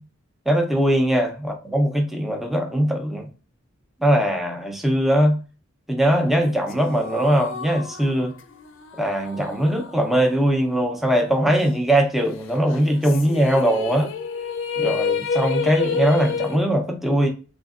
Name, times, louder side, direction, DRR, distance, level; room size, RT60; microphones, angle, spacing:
voice 1, 0.5-3.3 4.0-5.4 5.9-8.3 9.0-14.1 14.8-17.3, right 1 dB, ahead, 0.5 m, -21 dB
sound 1, 6.4-11.0 11.4-11.5 12.7-16.6, left 5 dB, 65° left, 0.5 m, -29 dB
3.5 x 3.0 x 2.4 m
head